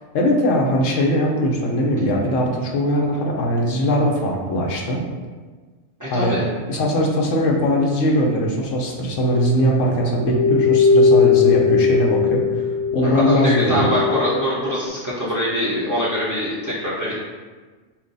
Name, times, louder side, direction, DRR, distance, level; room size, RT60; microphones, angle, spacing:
voice 1, 0.1-5.0 6.1-6.4 6.7-13.9, equal, 90° left, 0 dB, 1.1 m, -20 dB
voice 2, 6.0-6.4 13.0-17.1, equal, 15° right, -9 dB, 0.8 m, -23 dB
sound 1, 9.2-14.8, left 5 dB, 65° right, 0.3 m, -19 dB
5.9 x 2.3 x 4.0 m, 1.4 s
omnidirectional pair, 1.2 m